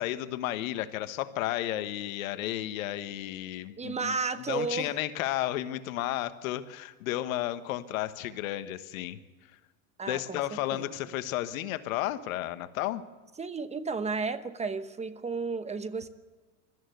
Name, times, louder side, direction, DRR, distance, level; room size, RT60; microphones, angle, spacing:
voice 1, 0.0-4.1 4.5-9.2 10.1-13.0, left 14 dB, 75° left, 11 dB, 1.4 m, -33 dB
voice 2, 3.8-4.9 10.0-10.4 10.7-11.1 13.4-16.1, right 4 dB, 15° right, 11 dB, 1.0 m, -33 dB
22.0 x 14.0 x 9.4 m, 1.3 s
supercardioid pair, 115°, 42 cm